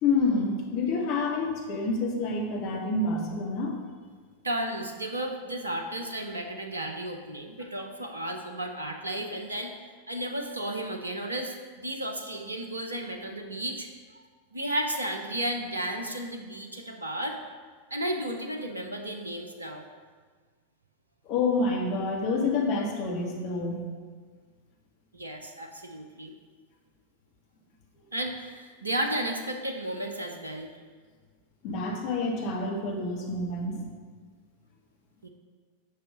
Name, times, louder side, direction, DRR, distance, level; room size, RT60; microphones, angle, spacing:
voice 1, 0.0-3.7 21.3-23.9 31.6-33.9, left 3 dB, 40° left, -1 dB, 2.0 m, -28 dB
voice 2, 4.4-9.7 10.1-13.9 14.5-17.4 17.9-19.8 25.1-26.3 28.1-30.8 35.2-35.3, right 1 dB, 80° right, 4 dB, 0.9 m, -33 dB
8.8 x 5.8 x 5.2 m, 1.5 s
figure-of-eight pair, 90°, 0 cm